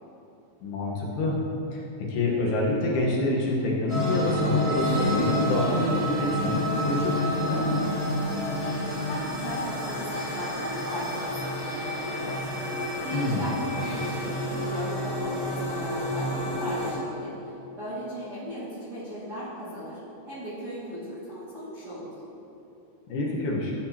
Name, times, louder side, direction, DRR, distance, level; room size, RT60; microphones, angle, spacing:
voice 1, 0.6-1.4 1.7-7.8 13.1-13.5 23.1-23.7, left 2 dB, 70° left, -3 dB, 3.2 m, -27 dB
sound 1, 3.9-16.9, left 1 dB, 15° left, 1.6 m, -29 dB
voice 2, 8.8-12.3 13.0-20.0 20.3-22.1, equal, 35° right, -11 dB, 1.8 m, -37 dB
15.0 x 9.4 x 2.9 m, 2.9 s
omnidirectional pair, 5.0 m